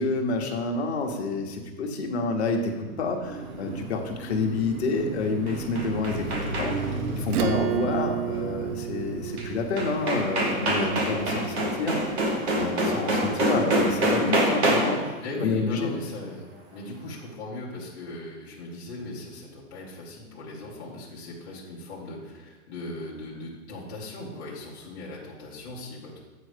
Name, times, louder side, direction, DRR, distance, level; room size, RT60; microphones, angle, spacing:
voice 1, 0.0-6.8 7.1-12.0 12.5-15.1 15.4-15.9, left 3 dB, 45° left, 2 dB, 1.0 m, -28 dB
Car passing by, 2.7-14.8, right 2 dB, 70° right, 1.5 m, -37 dB
sound 1, 5.2-7.0 9.4-9.5 9.8-15.1, right 1 dB, 45° right, 1.1 m, -26 dB
Acoustic guitar / Strum, 7.3-12.2, right 12 dB, 85° right, 0.6 m, -32 dB
voice 2, 15.2-26.2, left 2 dB, 15° left, -7 dB, 0.7 m, -38 dB
7.8 x 4.4 x 5.0 m, 1.2 s
hypercardioid pair, 175°, 44 cm